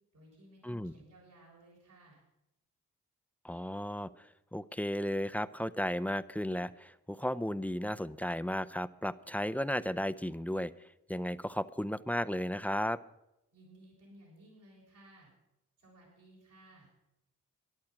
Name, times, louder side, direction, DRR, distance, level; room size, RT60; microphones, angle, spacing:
voice 1, 0.1-2.2 13.5-15.3 15.8-16.9, right 1 dB, 80° right, -4 dB, 6.8 m, -58 dB
voice 2, 3.4-13.0, equal, 5° left, 13 dB, 0.6 m, -34 dB
13.5 x 11.5 x 6.0 m, 0.88 s
supercardioid pair, 40°, 32 cm